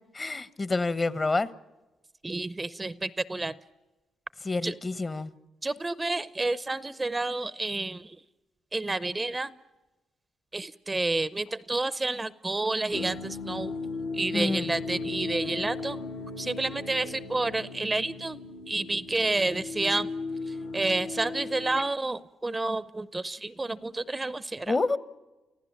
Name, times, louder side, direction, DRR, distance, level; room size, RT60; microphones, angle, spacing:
voice 1, 0.1-1.5 4.4-5.3 14.3-14.7 24.7-25.0, left 3 dB, 30° left, 1.0 m, -28 dB
voice 2, 2.2-3.5 4.6-4.7 5.6-8.2 8.7-9.5 10.5-13.8 14.1-16.0 16.4-18.4 18.7-20.1 20.5-24.8, right 2 dB, 20° right, 0.6 m, -30 dB
sound 1, 12.9-21.8, left 3 dB, 85° left, 2.4 m, -36 dB
28.5 x 15.0 x 7.3 m
cardioid pair, 85°, 0 cm